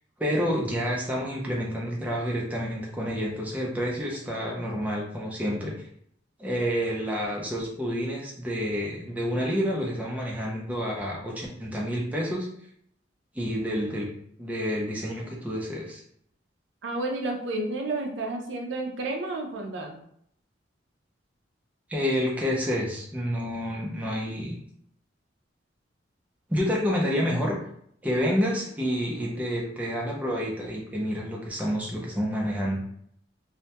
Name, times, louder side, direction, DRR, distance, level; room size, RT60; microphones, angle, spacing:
voice 1, 0.2-5.7 6.4-12.5 13.3-14.1 14.4-16.0 21.9-24.5 26.5-27.6 28.0-32.8, equal, 10° right, -3 dB, 0.4 m, -29 dB
voice 2, 16.8-20.0, right 2 dB, 70° right, 2 dB, 0.4 m, -31 dB
2.2 x 2.1 x 2.8 m, 0.68 s
head